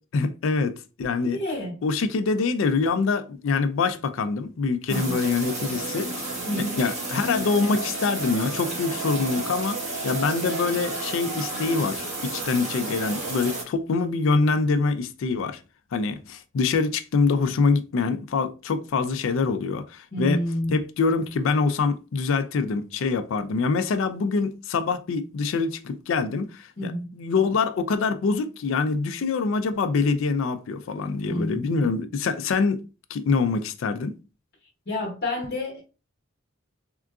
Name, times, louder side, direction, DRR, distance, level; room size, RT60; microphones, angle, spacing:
voice 1, 0.1-1.4 1.8-6.2 6.8-9.8 10.0-15.6 15.9-20.4 20.7-32.8 33.1-34.1, left 4 dB, 65° left, 0.4 m, -25 dB
voice 2, 1.2-1.8 4.9-5.2 6.5-6.8 20.1-20.8 26.8-27.1 31.3-31.9 34.9-35.8, left 1 dB, 50° left, 1.1 m, -29 dB
sound 1, 4.9-13.6, right 2 dB, 35° right, 1.2 m, -31 dB
3.6 x 2.4 x 2.3 m
head